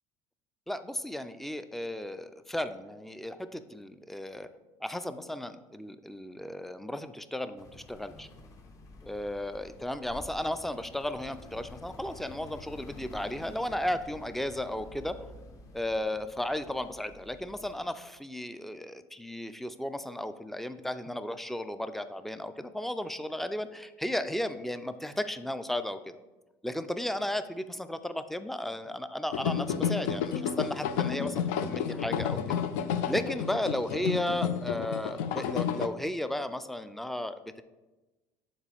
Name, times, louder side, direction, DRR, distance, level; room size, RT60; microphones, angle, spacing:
voice 1, 0.7-4.5 4.8-8.3 9.0-15.3 15.7-26.2 26.6-32.4 33.0-37.6, left 1 dB, 5° left, 11 dB, 0.3 m, -34 dB
sound 1, 7.6-17.9, left 2 dB, 40° left, 0.9 m, -50 dB
sound 2, 29.3-35.9, left 8 dB, 85° left, 0.4 m, -31 dB
7.3 x 3.9 x 3.4 m, 1.1 s
supercardioid pair, 105°, 9 cm